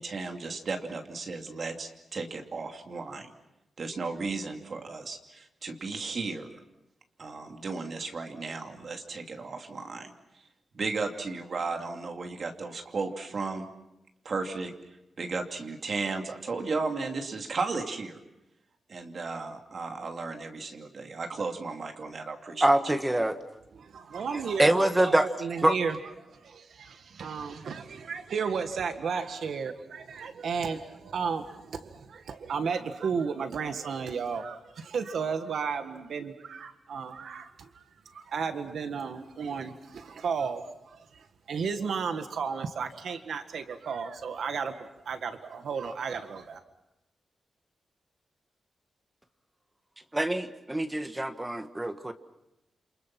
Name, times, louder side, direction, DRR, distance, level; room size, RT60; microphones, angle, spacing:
voice 1, 0.0-3.3 3.8-6.5 7.2-10.5 10.7-13.7 14.2-14.7 15.2-18.2 18.9-22.7, right 4 dB, 45° right, 3 dB, 2.6 m, -35 dB
voice 2, 22.6-23.3 24.3-25.3 25.6-25.7 50.1-52.1, right 1 dB, 10° right, 8 dB, 1.4 m, -25 dB
voice 3, 23.8-26.0 26.4-37.9 38.1-41.0 41.5-46.6, right 6 dB, 70° right, 7 dB, 1.7 m, -33 dB
29.0 x 27.5 x 6.0 m, 0.90 s
wide cardioid pair, 180°, 0 cm